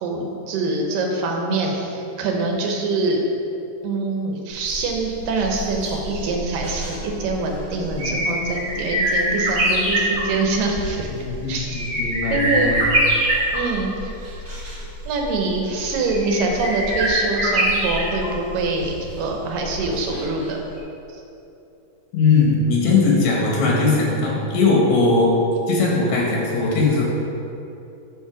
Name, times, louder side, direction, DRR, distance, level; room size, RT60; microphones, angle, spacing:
voice 1, 0.0-3.2 3.8-11.8 12.3-12.9 13.5-14.4 15.1-20.6 21.1-21.2, right 3 dB, 90° right, 1 dB, 2.7 m, -24 dB
sound 1, 4.5-20.5 20.8-20.9, right 1 dB, 35° right, 2.1 m, -25 dB
voice 2, 11.1-12.8 22.1-25.3 25.7-27.0, left 3 dB, 65° left, -3 dB, 2.5 m, -19 dB
7.0 x 6.1 x 5.0 m, 2.8 s
omnidirectional pair, 3.8 m